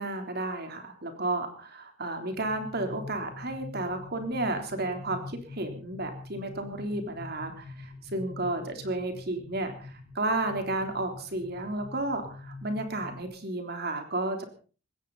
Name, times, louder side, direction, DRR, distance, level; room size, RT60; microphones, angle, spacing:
voice 1, 0.0-14.4, right 2 dB, 50° right, 6 dB, 3.7 m, -32 dB
sound 1, 2.3-13.3, left 3 dB, 25° right, 7.8 m, -45 dB
20.0 x 17.0 x 4.2 m, 0.38 s
head